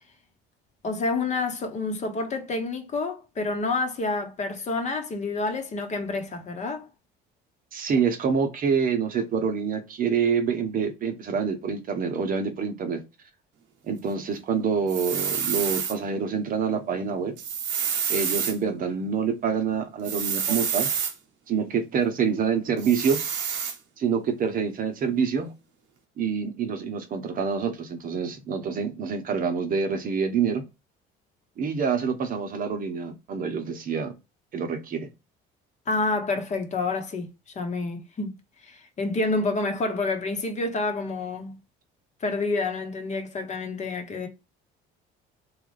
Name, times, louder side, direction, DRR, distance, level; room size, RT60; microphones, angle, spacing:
voice 1, 0.8-6.9 35.9-38.4 38.6-41.6 42.2-44.3, left 3 dB, 35° left, 0.9 m, -28 dB
voice 2, 7.7-13.0 13.8-17.4 18.1-20.9 21.5-23.2 24.0-25.5 26.2-30.6 31.6-34.2 34.5-35.1, right 6 dB, 45° right, 0.8 m, -26 dB
sound 1, 14.9-16.0 17.4-18.6 20.0-21.1 22.8-23.8, right 7 dB, 80° right, 1.0 m, -28 dB
3.1 x 2.4 x 3.2 m
cardioid pair, 100°, 19 cm